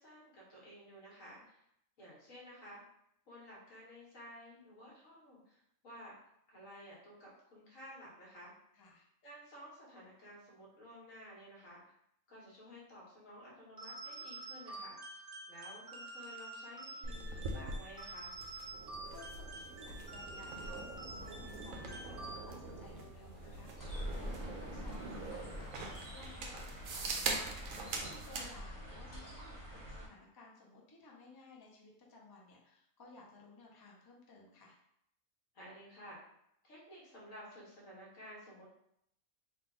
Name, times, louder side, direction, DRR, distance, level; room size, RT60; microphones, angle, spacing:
voice 1, 0.0-1.6 2.0-2.8 3.3-6.1 6.5-8.5 9.2-11.9 12.3-18.4 35.5-36.2 36.6-38.7, equal, 70° left, -5 dB, 1.6 m, -53 dB
voice 2, 8.7-9.1 18.8-34.8, left 3 dB, 40° left, -2 dB, 0.3 m, -58 dB
sound 1, 13.8-22.8, right 2 dB, 60° right, 0.4 m, -48 dB
sound 2, 17.0-28.5, right 3 dB, 75° right, 1.0 m, -43 dB
sound 3, 23.8-30.1, equal, 15° left, 1.2 m, -46 dB
3.7 x 2.3 x 3.7 m, 0.76 s
omnidirectional pair, 1.4 m